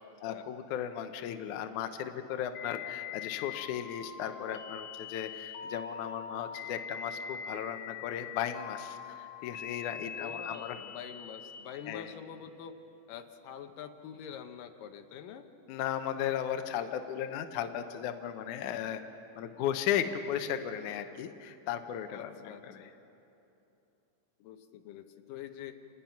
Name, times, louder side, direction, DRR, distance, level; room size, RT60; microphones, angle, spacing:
voice 1, 0.2-10.8 11.9-12.1 15.7-19.0 19.4-22.9, left 9 dB, 75° left, 7 dB, 2.2 m, -36 dB
sound 1, 2.5-11.6, left 7 dB, 55° left, 2.1 m, -43 dB
voice 2, 10.1-12.7 13.1-15.5 22.1-22.9 24.4-25.7, left 8 dB, 90° left, 7 dB, 2.6 m, -46 dB
28.0 x 19.5 x 5.8 m, 2.9 s
omnidirectional pair, 3.8 m